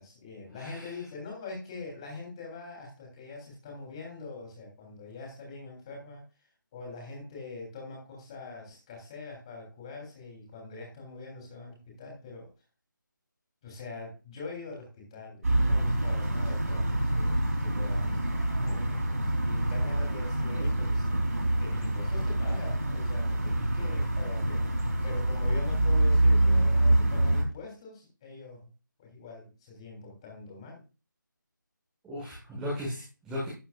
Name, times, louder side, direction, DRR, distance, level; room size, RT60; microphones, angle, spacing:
voice 1, 0.0-6.2 6.7-12.5 13.6-21.2 21.6-28.7 29.0-30.8, left 3 dB, 15° left, 0 dB, 3.4 m, -43 dB
voice 2, 0.6-0.9 32.0-33.5, left 1 dB, 5° right, -8 dB, 1.6 m, -36 dB
sound 1, 15.4-27.4, right 1 dB, 45° right, 3.4 m, -26 dB
12.0 x 9.9 x 2.5 m, 0.31 s
figure-of-eight pair, 160°, 11 cm